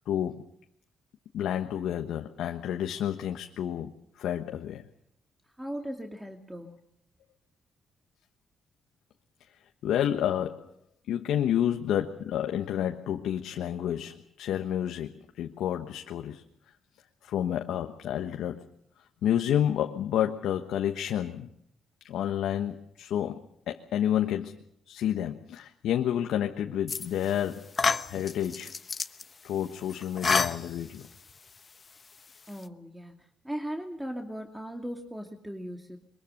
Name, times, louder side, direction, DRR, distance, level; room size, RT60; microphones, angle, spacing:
voice 1, 0.1-0.5 1.3-4.8 9.8-10.7 11.1-16.4 17.2-18.6 19.2-21.5 22.0-24.6 24.9-27.7 28.1-28.7 29.4-31.0, left 10 dB, 80° left, 4 dB, 1.2 m, -30 dB
voice 2, 5.4-6.8 32.5-36.0, equal, 10° right, 3 dB, 2.5 m, -38 dB
sound 1, 26.9-27.4 27.7-29.2 29.9-31.1, left 4 dB, 40° left, 1.1 m, -28 dB
23.0 x 22.0 x 6.6 m, 0.75 s
supercardioid pair, 65°, 0 cm